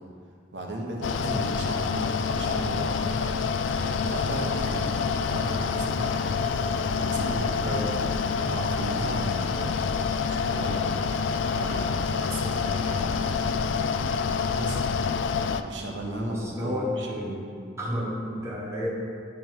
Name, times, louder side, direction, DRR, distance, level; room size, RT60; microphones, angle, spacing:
voice 1, 0.5-3.6 4.0-4.9 5.2-6.2 6.9-7.9 8.4-9.9 10.2-10.9 11.3-13.8 14.5-14.8 15.6-17.2, right 1 dB, 70° right, -1 dB, 1.2 m, -35 dB
Mechanical fan, 1.0-15.6, left 5 dB, 75° left, 0.4 m, -27 dB
voice 2, 16.2-17.5 17.8-18.9, left 1 dB, 15° right, -4 dB, 1.1 m, -31 dB
10.0 x 5.4 x 4.6 m, 2.3 s
head